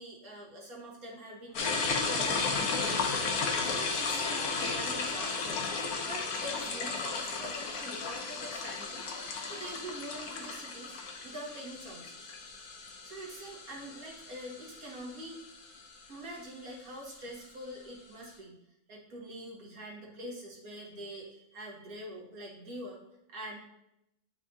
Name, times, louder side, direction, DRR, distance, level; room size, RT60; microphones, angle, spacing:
voice 1, 0.0-3.4 3.7-5.7 6.0-9.1 9.5-12.3 13.0-15.4 16.1-18.6 18.9-23.0 23.3-23.6, right 1 dB, 75° right, -3 dB, 2.0 m, -44 dB
sound 1, 1.5-15.9, left 4 dB, 75° left, 1.3 m, -34 dB
9.3 x 4.9 x 2.7 m, 0.83 s
omnidirectional pair, 1.6 m